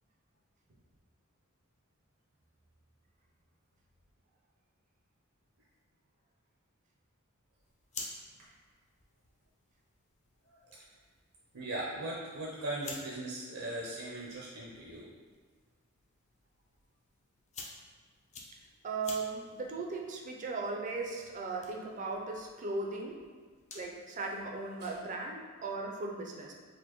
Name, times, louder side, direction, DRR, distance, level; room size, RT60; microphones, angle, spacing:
sound 1, 7.6-24.0, left 3 dB, 35° left, 0.5 m, -52 dB
voice 1, 11.5-15.1 24.8-24.9, right 1 dB, 80° right, -5 dB, 0.7 m, -39 dB
voice 2, 18.8-23.3 23.7-26.5, right 3 dB, 35° right, 0 dB, 0.4 m, -37 dB
4.2 x 2.5 x 3.0 m, 1.5 s
head